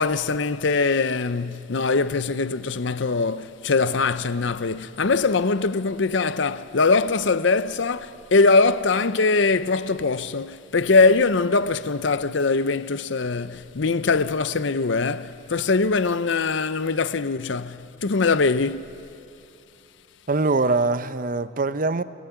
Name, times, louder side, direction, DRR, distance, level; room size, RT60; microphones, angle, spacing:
voice 1, 0.0-19.0, left 4 dB, 60° left, 0.7 m, -22 dB
voice 2, 20.3-22.0, right 3 dB, 40° right, 0.7 m, -23 dB
27.5 x 18.0 x 9.3 m
head